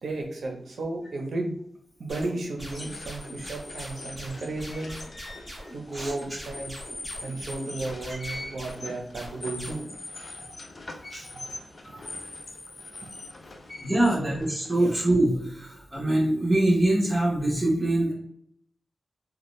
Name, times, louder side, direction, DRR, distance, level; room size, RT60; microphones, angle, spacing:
voice 1, 0.0-1.6 2.0-4.9 5.7-6.7 7.2-9.8 14.2-14.4 14.8-14.9, right 2 dB, 70° right, 1 dB, 0.6 m, -33 dB
sound 1, 2.1-9.9, equal, 5° left, 1.0 m, -42 dB
sound 2, 2.6-15.3, left 2 dB, 40° left, 0.4 m, -42 dB
voice 2, 8.1-8.4 11.1-11.3 11.8-12.0 13.8-18.1, right 1 dB, 20° right, -5 dB, 1.1 m, -24 dB
2.7 x 2.2 x 3.1 m, 0.71 s
wide cardioid pair, 130°, 0 cm